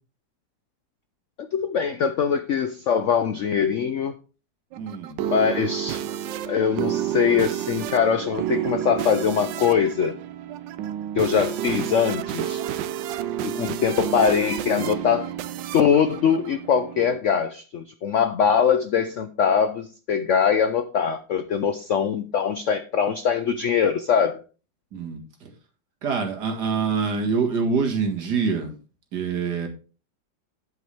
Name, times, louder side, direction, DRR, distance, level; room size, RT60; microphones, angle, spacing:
voice 1, 1.4-4.1 5.3-6.0 6.5-10.2 11.1-12.6 13.4-15.3 15.7-24.4, left 7 dB, 75° left, 10 dB, 0.7 m, -22 dB
sound 1, 4.7-17.2, right 11 dB, 80° right, 1.3 m, -30 dB
voice 2, 4.8-5.2 24.9-25.5 26.0-28.7 29.1-29.7, right 5 dB, 60° right, 2 dB, 2.3 m, -25 dB
8.3 x 8.2 x 3.4 m, 0.35 s
omnidirectional pair, 2.0 m